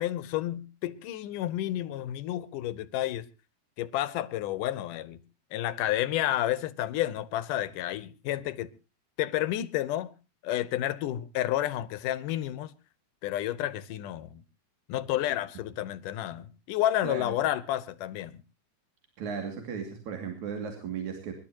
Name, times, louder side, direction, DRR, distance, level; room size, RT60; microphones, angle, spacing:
voice 1, 0.0-3.3 3.8-5.2 5.5-8.7 9.2-10.1 10.4-12.7 13.2-14.4 14.9-18.4, left 13 dB, 80° left, 2.5 m, -30 dB
voice 2, 17.0-17.3 19.2-21.3, right 6 dB, 65° right, 3.8 m, -35 dB
25.5 x 12.0 x 2.9 m
omnidirectional pair, 3.7 m